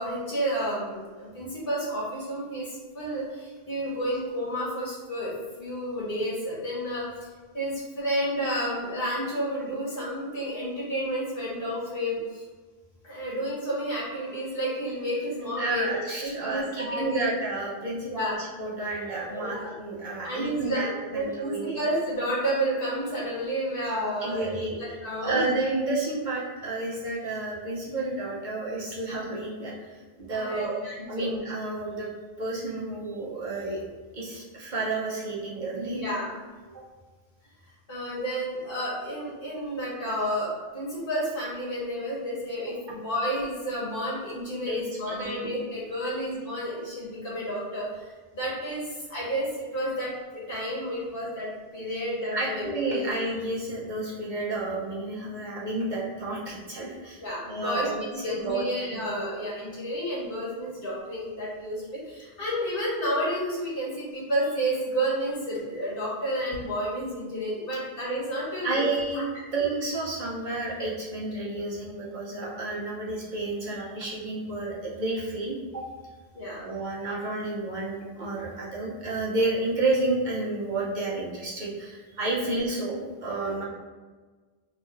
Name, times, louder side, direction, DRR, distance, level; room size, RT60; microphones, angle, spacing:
voice 1, 0.0-5.3 5.6-7.3 7.5-12.4 13.0-17.3 18.1-18.4 19.3-19.7 20.0-24.5 24.8-25.4 30.3-31.3 35.9-36.3 37.9-53.0 57.2-68.8 69.6-69.7 76.3-76.6 82.4-82.5, equal, 60° left, -7 dB, 1.5 m, -31 dB
voice 2, 15.6-21.8 24.2-30.8 31.1-32.1 32.4-33.8 34.1-36.0 36.7-36.8 44.6-44.8 45.1-45.6 52.3-57.2 57.5-57.9 58.2-59.3 68.6-69.2 69.5-75.9 76.6-83.6, right 2 dB, 50° right, -5 dB, 0.8 m, -31 dB
3.1 x 2.5 x 4.3 m, 1.4 s
omnidirectional pair, 1.1 m